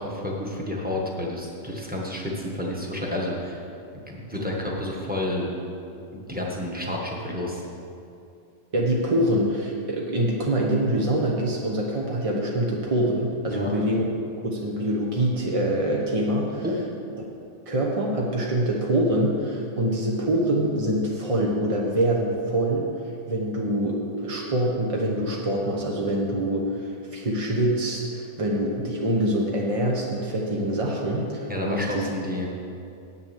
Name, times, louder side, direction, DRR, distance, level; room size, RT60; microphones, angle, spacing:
voice 1, 0.0-3.6 4.1-5.5 6.1-7.6 13.4-13.7 16.6-16.8 31.5-32.5, left 1 dB, 5° right, -3 dB, 1.2 m, -30 dB
voice 2, 8.7-14.1 14.4-16.6 17.7-22.9 23.3-32.1, right 1 dB, 30° right, -2 dB, 0.6 m, -25 dB
8.6 x 6.7 x 7.3 m, 2.6 s
omnidirectional pair, 1.9 m